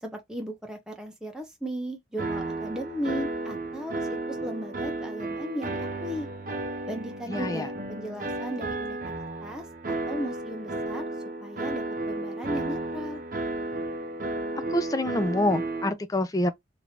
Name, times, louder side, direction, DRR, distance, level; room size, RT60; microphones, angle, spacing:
voice 1, 0.0-6.3 6.9-9.1 9.4-11.1 11.4-13.2, equal, 5° right, 0.8 m, -36 dB
sound 1, 2.2-15.9, right 2 dB, 45° right, 0.7 m, -33 dB
voice 2, 7.3-7.7 14.7-16.5, left 1 dB, 20° left, 0.4 m, -26 dB
3.0 x 2.6 x 4.3 m
head